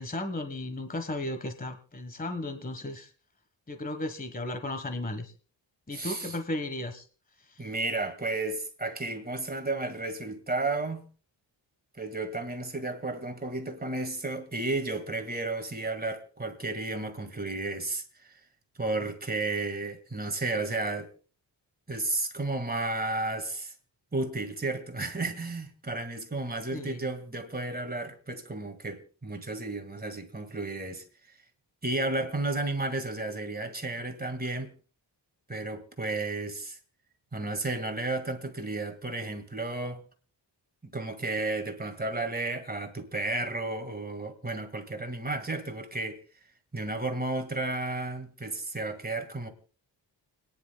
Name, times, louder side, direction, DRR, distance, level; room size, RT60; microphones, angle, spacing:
voice 1, 0.0-3.1 3.7-5.3 5.9-7.0 7.5-7.6 26.7-27.0, left 1 dB, 20° left, 1.3 m, -35 dB
voice 2, 5.9-6.4 7.6-11.1 12.0-18.4 18.8-21.1 21.9-23.7 24.1-31.0 31.8-34.7 35.5-36.8 37.3-40.0 40.8-46.2 46.7-49.5, right 2 dB, 20° right, 1.8 m, -33 dB
30.0 x 10.5 x 2.3 m
wide cardioid pair, 115°, 45 cm